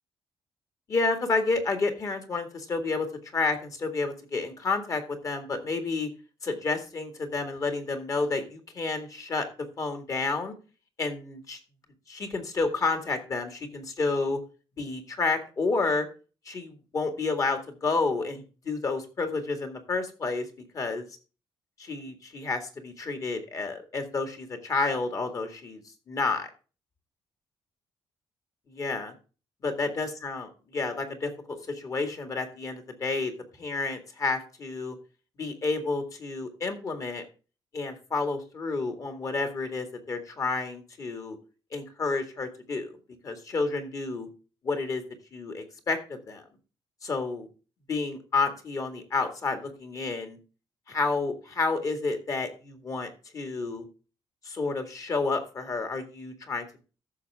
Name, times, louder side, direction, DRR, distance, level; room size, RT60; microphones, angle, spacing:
voice 1, 0.9-3.1 3.3-6.1 6.4-9.5 9.8-10.5 11.0-11.6 12.1-14.4 14.8-16.1 16.5-20.5 20.7-21.1 21.8-25.8 26.1-26.5 28.7-29.1 29.6-33.3 33.6-35.0 35.4-37.2 37.7-41.4 41.7-43.0 43.2-44.3 44.6-45.0 45.3-46.4 47.0-47.5 47.9-50.4 50.9-53.8 54.4-56.8, left 3 dB, 35° left, 6 dB, 2.0 m, -30 dB
14.5 x 6.5 x 3.5 m, 0.34 s
cardioid pair, 160°, 10 cm